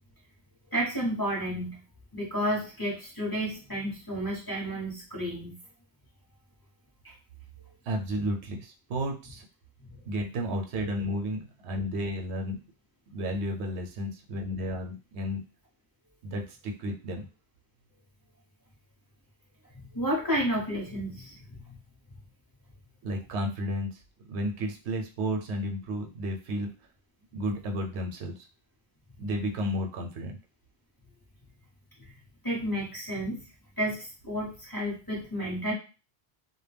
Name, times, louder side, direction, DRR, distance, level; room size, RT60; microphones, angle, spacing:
voice 1, 0.7-1.8 2.1-5.5 7.0-7.1 19.8-21.7 32.4-33.4 33.8-35.7, equal, 25° left, -4 dB, 0.6 m, -31 dB
voice 2, 7.9-9.4 10.1-12.6 13.1-15.4 16.2-17.3 23.0-24.0 24.3-26.7 27.3-28.4 29.2-30.4, equal, 85° right, 2 dB, 0.9 m, -32 dB
2.2 x 2.1 x 3.2 m, 0.33 s
omnidirectional pair, 1.1 m